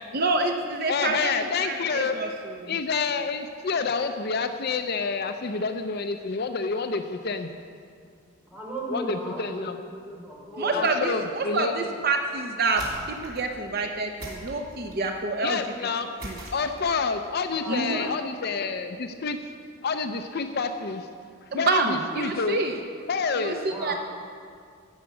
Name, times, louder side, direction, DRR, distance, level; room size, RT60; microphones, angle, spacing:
voice 1, 0.1-2.3 2.6-2.7 10.6-15.6 16.2-16.4 17.7-18.1 21.5-22.8 23.4-23.9, right 3 dB, 50° right, 4 dB, 0.7 m, -27 dB
voice 2, 0.9-2.1 2.7-7.5 8.9-9.8 10.7-11.7 15.4-16.2 16.5-19.4 19.8-21.1 21.5-22.6 23.1-23.6, left 4 dB, 50° left, 7 dB, 0.5 m, -28 dB
voice 3, 8.5-9.7 10.0-10.9 17.5-18.0 23.7-24.0, right 1 dB, 5° right, -5 dB, 3.1 m, -35 dB
sound 1, 12.7-13.5 14.2-15.1 16.2-17.1, right 1 dB, 85° right, 3.2 m, -40 dB
14.0 x 6.0 x 8.3 m, 2.2 s
head